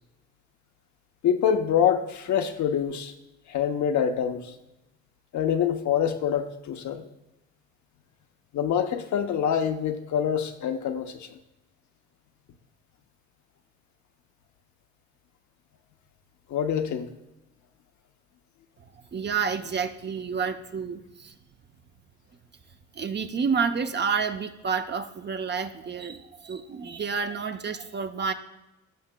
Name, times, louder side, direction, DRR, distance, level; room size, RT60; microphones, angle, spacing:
voice 1, 1.2-3.1 3.5-4.5 5.3-7.0 8.5-11.3 16.5-17.1, left 8 dB, 70° left, 6 dB, 0.8 m, -25 dB
voice 2, 19.1-21.3 23.0-28.3, right 6 dB, 35° right, 7 dB, 0.7 m, -29 dB
15.0 x 5.7 x 2.2 m, 0.97 s
cardioid pair, 90°, 30 cm